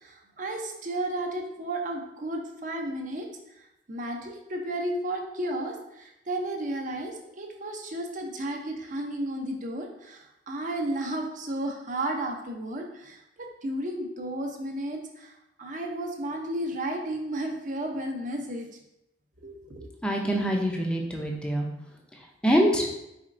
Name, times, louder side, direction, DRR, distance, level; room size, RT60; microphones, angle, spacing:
voice 1, 0.0-3.3 3.9-15.3 15.6-18.7 19.4-19.9, right 1 dB, 45° right, 2 dB, 0.6 m, -33 dB
voice 2, 20.0-21.7 22.4-22.9, equal, 5° left, 0 dB, 0.5 m, -24 dB
4.2 x 3.8 x 2.5 m, 0.85 s
head